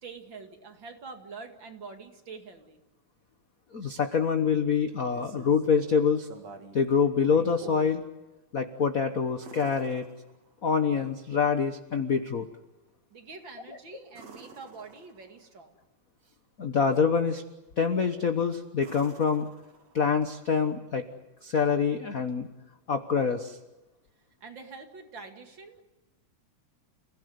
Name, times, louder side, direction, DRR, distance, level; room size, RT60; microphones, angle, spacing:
voice 1, 0.0-2.8 13.1-15.8 24.4-25.8, right 4 dB, 40° right, 5 dB, 2.6 m, -45 dB
voice 2, 3.7-6.3 6.7-8.0 8.5-10.1 10.6-12.5 16.6-17.4 17.8-19.5 19.9-21.0 21.4-22.5 22.9-23.6, left 6 dB, 70° left, 7 dB, 0.8 m, -26 dB
sound 1, 4.9-5.7 6.2-6.8 7.2-8.0 9.4-10.7 14.1-15.4 17.9-18.3 18.8-20.2 22.3-22.4, right 4 dB, 60° right, 3.4 m, -49 dB
29.5 x 16.5 x 9.6 m, 1.0 s
omnidirectional pair, 3.4 m